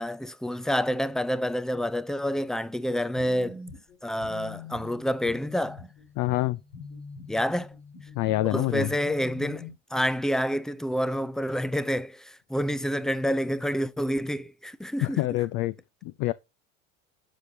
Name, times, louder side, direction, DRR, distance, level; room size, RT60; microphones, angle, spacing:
voice 1, 0.0-3.6 4.0-5.8 7.3-7.7 8.5-15.2, equal, ahead, 0.4 m, -28 dB
sound 1, 2.8-9.7, left 4 dB, 65° left, 4.2 m, -44 dB
voice 2, 6.2-6.6 8.1-8.9 15.0-15.7 16.0-16.3, left 17 dB, 50° left, 0.6 m, -26 dB
11.5 x 7.3 x 2.8 m
hypercardioid pair, 80°, 39 cm